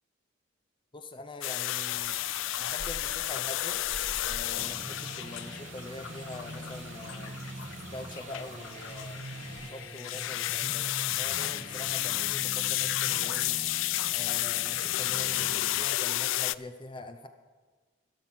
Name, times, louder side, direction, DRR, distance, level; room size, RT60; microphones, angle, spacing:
voice 1, 0.9-2.2 2.6-3.8 4.2-7.4 7.9-9.3 9.6-13.6 14.1-17.3, left 2 dB, 25° left, 8 dB, 0.6 m, -44 dB
sound 1, 1.4-16.5, left 16 dB, 75° left, 0.3 m, -32 dB
sound 2, 1.7-9.7, right 3 dB, 70° right, 1.1 m, -48 dB
sound 3, 4.5-15.9, right 1 dB, 35° right, 0.9 m, -44 dB
13.0 x 12.5 x 5.6 m, 1.4 s
head